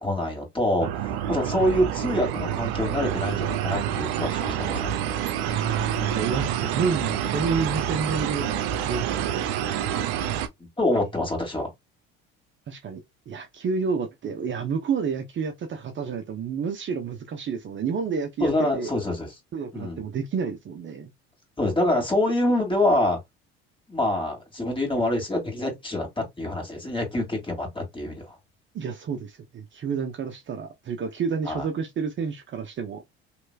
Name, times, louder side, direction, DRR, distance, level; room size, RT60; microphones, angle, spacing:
voice 1, 0.0-4.9 10.8-11.7 18.4-19.3 19.7-20.0 21.6-23.2 23.9-28.3 31.5-31.6, left 1 dB, 15° left, 2.2 m, -26 dB
sound 1, 0.8-10.5, right 10 dB, 75° right, 0.6 m, -28 dB
voice 2, 5.5-9.4 12.7-13.0 13.3-18.9 19.5-21.1 28.7-33.0, right 5 dB, 35° right, 0.8 m, -29 dB
3.2 x 3.0 x 2.3 m
hypercardioid pair, 70°, 31 cm